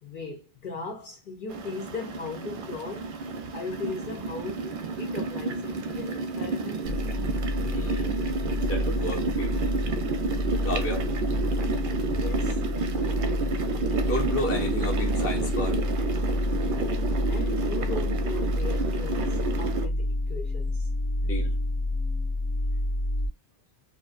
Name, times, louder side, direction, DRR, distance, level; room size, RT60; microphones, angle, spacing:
voice 1, 0.0-3.2 3.5-6.9 12.1-12.6 17.2-20.9, left 4 dB, 60° left, 0.6 m, -38 dB
sound 1, 1.5-19.9, right 4 dB, 60° right, 0.6 m, -31 dB
sound 2, 6.8-23.3, left 1 dB, 90° left, 1.0 m, -29 dB
voice 2, 7.6-8.2 8.6-9.6 10.6-11.1 14.0-15.8 21.2-21.5, equal, 15° left, 0.5 m, -32 dB
2.5 x 2.1 x 2.4 m
omnidirectional pair, 1.1 m